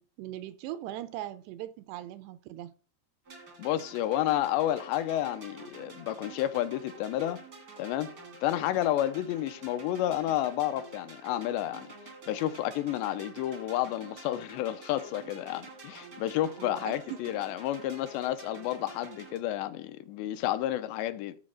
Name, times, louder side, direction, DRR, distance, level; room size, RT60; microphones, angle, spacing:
voice 1, 0.0-2.7 16.6-17.2, right 13 dB, 80° right, 2.5 m, -40 dB
sound 1, 3.2-19.4, right 3 dB, 60° right, 0.9 m, -49 dB
voice 2, 3.6-7.4 7.8-8.1 8.4-11.9 12.3-21.4, left 13 dB, 85° left, 2.7 m, -30 dB
11.5 x 4.2 x 6.2 m
omnidirectional pair, 5.0 m